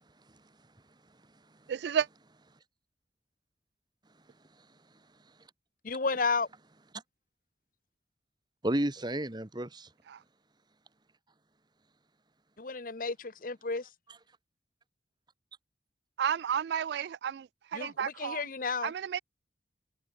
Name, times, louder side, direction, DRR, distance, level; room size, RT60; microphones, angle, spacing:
voice 1, 0.0-1.7 4.0-5.5 6.9-7.0 8.6-9.9 14.1-14.2, right 1 dB, 25° right, 1.4 m, -37 dB
voice 2, 1.7-2.1 16.2-18.4 18.8-19.2, right 8 dB, 65° right, 0.3 m, -32 dB
voice 3, 5.8-6.5 12.6-13.9 17.7-18.9, left 4 dB, 50° left, 1.0 m, -32 dB
head